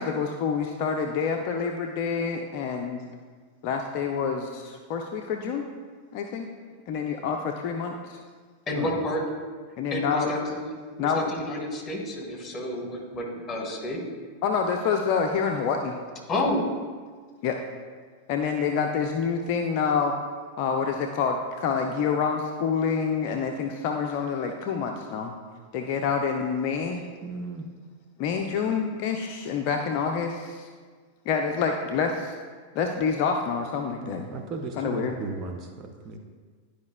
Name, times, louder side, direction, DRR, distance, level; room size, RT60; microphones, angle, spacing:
voice 1, 0.0-3.0 3.6-5.7 6.1-6.5 6.9-8.2 9.8-10.3 11.0-11.3 14.4-15.9 17.4-17.6 18.3-20.1 20.6-25.3 25.7-27.0 28.2-30.7 31.3-32.3 32.7-34.5 34.8-35.2, left 6 dB, 45° left, 3 dB, 0.5 m, -27 dB
voice 2, 8.7-9.2 9.9-10.7 11.0-14.0 16.3-16.6, left 1 dB, 25° left, 0 dB, 1.7 m, -30 dB
voice 3, 27.2-27.7 34.0-36.2, right 4 dB, 30° right, 3 dB, 0.6 m, -36 dB
11.5 x 4.9 x 2.2 m, 1.6 s
figure-of-eight pair, 90°, 0 cm